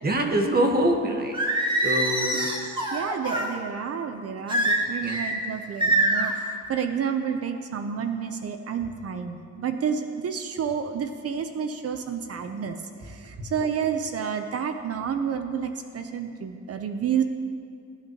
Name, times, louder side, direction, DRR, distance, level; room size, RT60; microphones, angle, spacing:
voice 1, 0.0-1.4 1.8-2.5 5.0-5.2 13.4-13.5, right 1 dB, 30° right, 3 dB, 1.3 m, -24 dB
Singing, 1.3-3.5 4.5-5.3 5.8-6.3, right 1 dB, 15° right, 1.8 m, -24 dB
voice 2, 2.3-12.8 13.0-17.2, right 7 dB, 55° right, 7 dB, 0.8 m, -30 dB
20.5 x 9.0 x 3.0 m, 2.3 s
cardioid pair, 90°, 30 cm